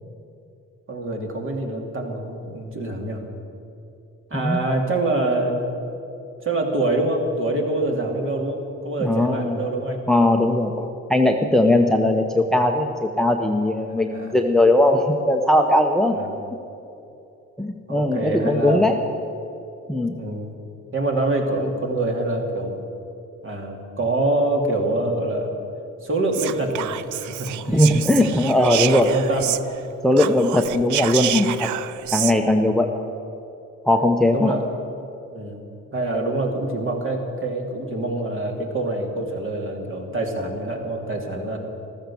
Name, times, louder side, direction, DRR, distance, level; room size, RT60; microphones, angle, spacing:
voice 1, 0.9-3.2 4.3-5.6 6.4-10.0 13.8-14.4 16.2-16.3 17.9-18.8 20.2-20.5 20.9-22.8 23.4-25.5 26.0-27.9 28.6-29.6 34.3-34.6 35.3-35.6 35.9-41.6, right 2 dB, 45° right, 1 dB, 2.9 m, -25 dB
voice 2, 9.0-9.6 10.1-16.2 17.6-19.0 19.9-20.2 27.7-29.1 30.0-31.7 32.1-32.9 33.9-34.5, left 1 dB, ahead, 4 dB, 0.9 m, -19 dB
Whispering, 26.3-29.9 30.1-32.4, right 13 dB, 75° right, 0.6 m, -28 dB
14.0 x 13.5 x 7.1 m, 2.8 s
cardioid pair, 90°, 30 cm